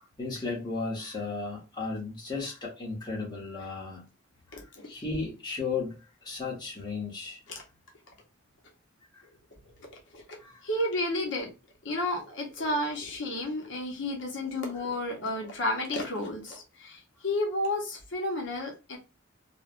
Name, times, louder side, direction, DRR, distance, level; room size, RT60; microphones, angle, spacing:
voice 1, 0.2-4.0 4.5-7.4 9.1-9.2 10.4-10.6, left 4 dB, 20° left, 0.9 m, -35 dB
voice 2, 4.5-4.9 7.5-7.6 10.1-10.2 10.6-11.5 11.8-19.0, left 1 dB, 65° left, 0.7 m, -32 dB
3.1 x 2.0 x 2.4 m
head